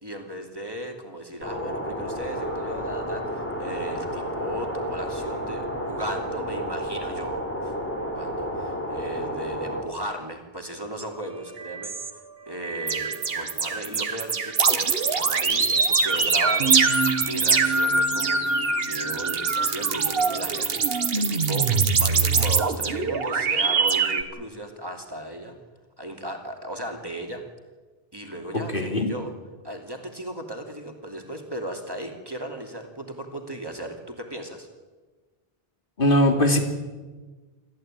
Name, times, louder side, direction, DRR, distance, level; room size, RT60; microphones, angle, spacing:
voice 1, 0.0-7.7 8.1-11.9 12.5-25.6 26.0-27.4 28.1-29.3 29.6-34.7, right 1 dB, 25° right, 3 dB, 2.9 m, -36 dB
sound 1, 1.4-9.8, equal, 10° left, 4.1 m, -31 dB
sound 2, 11.0-11.1 11.6-12.1 12.6-24.2, right 4 dB, 70° right, 1.5 m, -23 dB
voice 2, 28.7-29.1 36.0-36.6, left 1 dB, 60° left, 4 dB, 3.0 m, -20 dB
27.0 x 14.5 x 9.1 m, 1.3 s
omnidirectional pair, 1.0 m